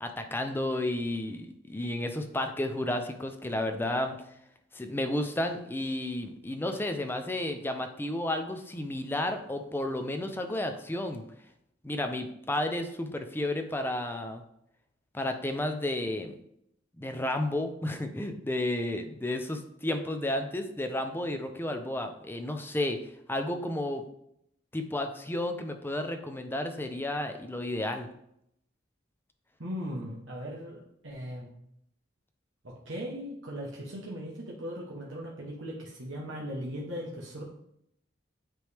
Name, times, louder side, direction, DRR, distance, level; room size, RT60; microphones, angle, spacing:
voice 1, 0.0-4.2 4.7-11.2 11.8-14.4 15.1-16.3 17.0-23.0 23.3-24.1 24.7-28.1, left 1 dB, 10° left, 6 dB, 0.5 m, -32 dB
voice 2, 29.6-31.5 32.6-37.4, equal, 90° right, -3 dB, 1.1 m, -38 dB
9.1 x 3.2 x 3.4 m, 0.75 s
head